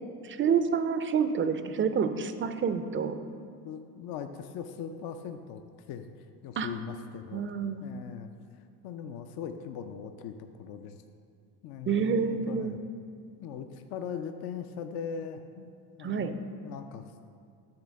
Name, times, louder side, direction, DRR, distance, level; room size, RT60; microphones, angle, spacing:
voice 1, 0.2-3.2 6.6-6.7 7.3-7.8 11.9-12.7 16.0-16.3, right 6 dB, 25° right, 9 dB, 0.5 m, -28 dB
voice 2, 3.6-5.6 5.9-7.5 7.8-8.3 8.8-11.0 11.6-12.8 13.4-15.7 16.0-17.1, left 7 dB, 50° left, 7 dB, 0.5 m, -40 dB
8.8 x 3.4 x 6.3 m, 2.4 s
supercardioid pair, 80°, 47 cm